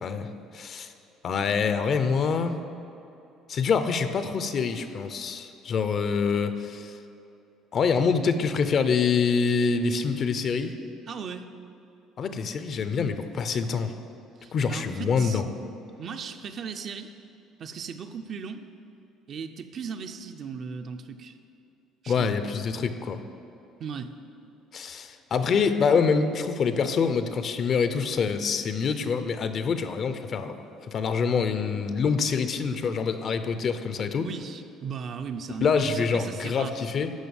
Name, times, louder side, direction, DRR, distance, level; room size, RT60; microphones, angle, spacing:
voice 1, 0.0-0.9 1.2-2.6 3.5-7.0 7.7-10.8 12.2-13.9 14.5-15.5 22.1-23.2 24.7-34.3 35.6-37.1, left 5 dB, 40° left, 10 dB, 0.6 m, -26 dB
voice 2, 11.1-11.5 14.4-15.4 16.0-17.1 17.6-18.7 19.3-21.4 22.0-22.3 23.8-24.1 34.2-36.7, right 6 dB, 45° right, 7 dB, 0.6 m, -37 dB
12.5 x 5.7 x 7.1 m, 2.9 s
cardioid pair, 135°, 0 cm